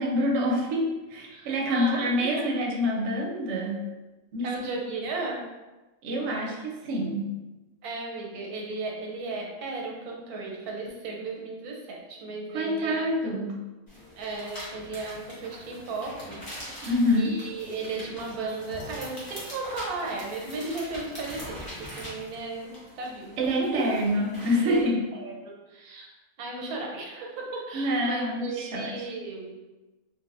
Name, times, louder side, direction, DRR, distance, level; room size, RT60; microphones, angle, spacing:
voice 1, 0.0-3.9 4.3-4.5 6.0-7.3 12.5-13.6 16.8-17.4 23.4-25.1 27.7-29.1, left 1 dB, 65° right, -1 dB, 0.8 m, -26 dB
voice 2, 1.3-2.5 4.4-5.4 7.8-13.1 14.1-23.9 24.6-24.9 25.1-26.1 26.4-29.5, right 3 dB, 90° right, 0 dB, 1.1 m, -35 dB
sound 1, 13.9-24.8, equal, 20° left, 0.7 m, -43 dB
3.2 x 2.1 x 2.4 m, 1.1 s
omnidirectional pair, 1.5 m